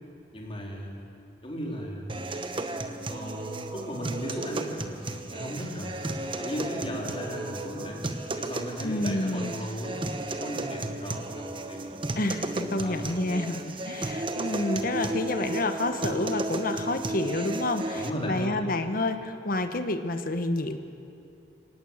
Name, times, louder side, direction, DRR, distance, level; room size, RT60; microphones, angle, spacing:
voice 1, 0.3-1.0 1.4-2.3 3.1-6.0 6.4-8.1 8.4-10.0 10.3-11.8 12.8-13.0 17.9-18.7, equal, 30° left, -1 dB, 3.9 m, -36 dB
sound 1, 2.1-18.1, right 2 dB, 30° right, 1.1 m, -34 dB
voice 2, 8.8-9.5 12.2-20.8, left 2 dB, 50° left, 8 dB, 1.2 m, -29 dB
25.5 x 18.5 x 7.3 m, 2.7 s
head